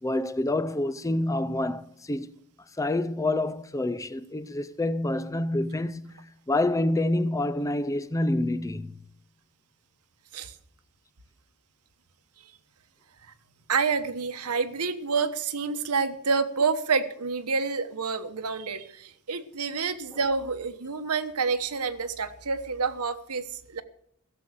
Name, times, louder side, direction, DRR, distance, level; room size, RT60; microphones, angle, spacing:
voice 1, 0.0-2.3 2.8-9.0 20.1-20.3, left 1 dB, 15° left, 0.5 m, -27 dB
voice 2, 13.7-23.8, right 5 dB, 85° right, 1.2 m, -28 dB
16.5 x 7.6 x 7.6 m
head